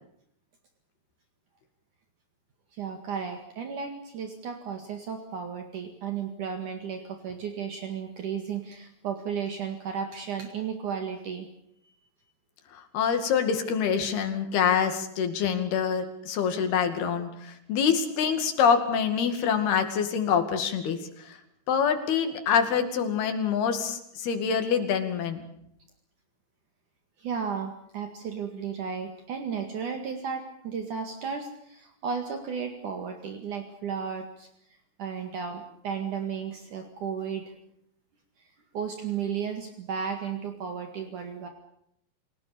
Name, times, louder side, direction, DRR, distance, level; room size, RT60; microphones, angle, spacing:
voice 1, 2.7-11.5 27.2-34.5 35.0-37.5 38.7-41.5, right 6 dB, 60° right, 5 dB, 3.2 m, -34 dB
voice 2, 12.7-21.4 21.7-25.4, left 7 dB, 85° left, 7 dB, 4.4 m, -26 dB
28.5 x 17.5 x 6.9 m, 0.74 s
omnidirectional pair, 4.4 m